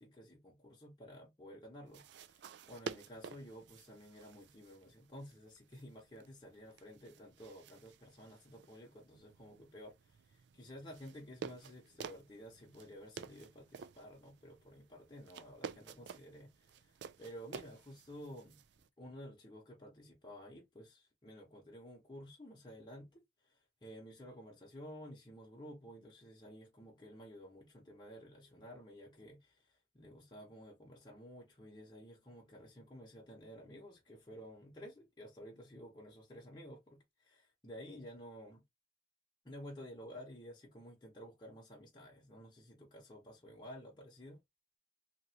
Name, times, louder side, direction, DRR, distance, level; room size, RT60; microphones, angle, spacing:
voice 1, 0.0-18.6 19.0-38.6 39.4-44.4, equal, 20° left, 0.9 m, -53 dB
sound 1, 1.9-18.9, right 6 dB, 60° right, 0.3 m, -52 dB
2.9 x 2.6 x 2.8 m
head